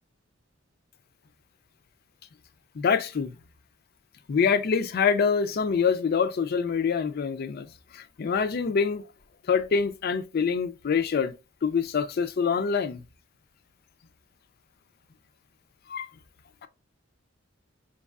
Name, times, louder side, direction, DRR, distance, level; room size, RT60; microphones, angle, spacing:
voice 1, 2.8-3.3 4.3-7.7 7.9-9.0 9.5-11.3 11.6-13.0 15.9-16.1 16.6-16.7, left 6 dB, 50° left, 0.4 m, -25 dB
5.3 x 3.1 x 2.3 m
head